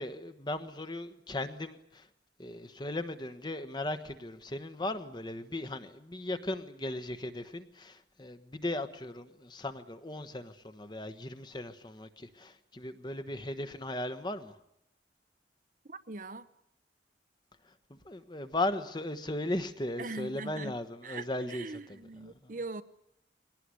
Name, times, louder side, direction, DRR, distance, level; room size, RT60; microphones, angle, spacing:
voice 1, 0.0-2.1 2.4-14.6 17.6-22.0 22.2-22.5, left 1 dB, 25° left, 1.3 m, -37 dB
voice 2, 15.8-16.5 20.0-20.8 21.0-22.8, right 3 dB, 50° right, 0.9 m, -41 dB
22.5 x 18.0 x 9.8 m
head